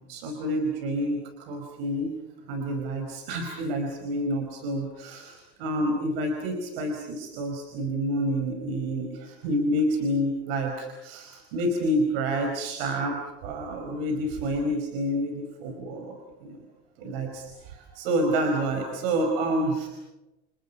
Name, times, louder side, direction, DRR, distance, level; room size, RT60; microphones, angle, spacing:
voice 1, 0.0-2.1 2.5-16.1 16.4-16.6 17.0-19.9, right 1 dB, 65° right, 4 dB, 5.0 m, -28 dB
30.0 x 29.5 x 5.6 m, 0.98 s
supercardioid pair, 155°, 31 cm